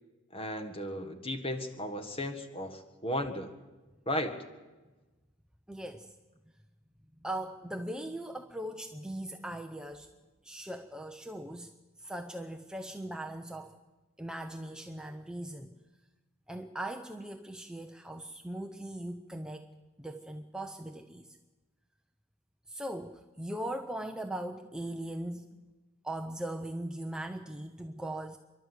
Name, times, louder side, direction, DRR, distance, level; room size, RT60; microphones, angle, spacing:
voice 1, 0.3-3.5 4.1-4.4, left 1 dB, 25° left, 6 dB, 1.6 m, -35 dB
voice 2, 5.7-6.1 7.2-10.1 10.4-11.7 12.0-13.8 14.2-15.7 16.5-19.7 20.0-21.4 22.7-25.5 26.0-28.4, right 1 dB, 5° right, 5 dB, 0.7 m, -39 dB
28.0 x 11.5 x 8.2 m, 1.2 s
head